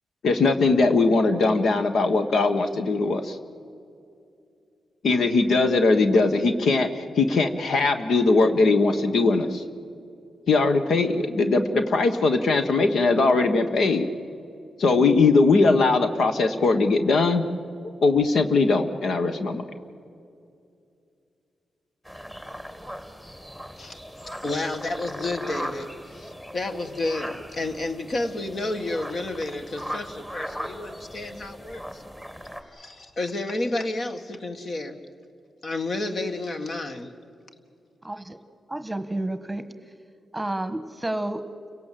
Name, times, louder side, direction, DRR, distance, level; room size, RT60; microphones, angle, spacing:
voice 1, 0.2-3.4 5.0-9.6 10.5-14.0 14.8-17.4 18.0-19.6, left 3 dB, 75° left, 8 dB, 1.4 m, -20 dB
sound 1, 22.1-32.6, equal, 15° left, 2.3 m, -38 dB
voice 2, 24.3-32.0 32.7-35.0 35.6-37.1, left 2 dB, 50° left, 6 dB, 1.9 m, -31 dB
voice 3, 38.0-38.4 38.7-39.6 40.3-41.4, right 1 dB, 10° right, 10 dB, 1.3 m, -30 dB
29.5 x 17.5 x 7.7 m, 2.5 s
cardioid pair, 90°, 0 cm